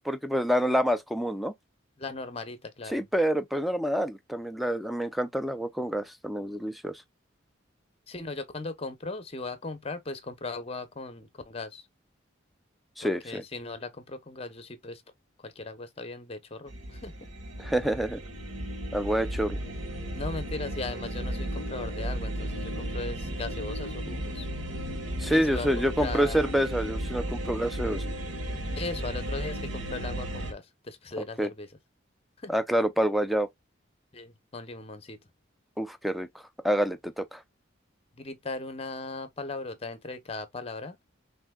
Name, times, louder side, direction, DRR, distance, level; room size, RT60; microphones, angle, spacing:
voice 1, 0.0-1.5 2.9-7.0 13.0-13.4 17.6-18.2 18.9-19.6 25.2-28.1 31.4-31.5 32.5-33.5 35.8-37.4, equal, ahead, 0.4 m, -27 dB
voice 2, 2.0-3.0 8.1-11.9 13.0-15.0 15.4-17.1 20.1-24.5 25.3-26.5 28.8-31.7 32.4-32.5 34.1-35.2 38.2-41.0, left 3 dB, 30° left, 0.7 m, -38 dB
sound 1, 16.7-30.5, right 1 dB, 80° right, 1.2 m, -34 dB
5.8 x 2.7 x 2.2 m
head